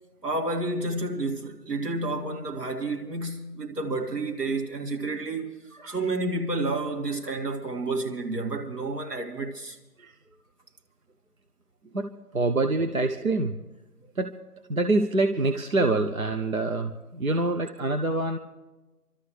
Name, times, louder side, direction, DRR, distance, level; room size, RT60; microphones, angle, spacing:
voice 1, 0.2-9.8, right 2 dB, 80° right, 2.7 m, -30 dB
voice 2, 12.3-13.6 14.2-14.3 14.7-18.4, right 2 dB, 60° right, 0.9 m, -25 dB
28.0 x 13.0 x 3.3 m
figure-of-eight pair, 175°, 47 cm